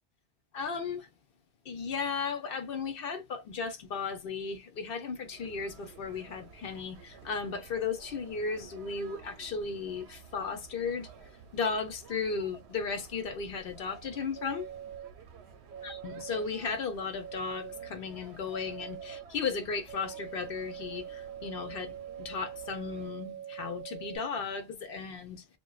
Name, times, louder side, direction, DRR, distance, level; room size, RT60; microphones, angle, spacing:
voice 1, 0.5-1.1 1.6-14.7 15.8-25.5, left 5 dB, 60° left, 0.8 m, -35 dB
sound 1, 5.2-23.1, right 6 dB, 75° right, 0.8 m, -53 dB
sound 2, 14.3-15.1 15.7-16.5 17.2-17.9 18.5-19.2 19.9-24.2, right 10 dB, 45° right, 0.8 m, -43 dB
2.5 x 2.2 x 2.2 m
omnidirectional pair, 1.1 m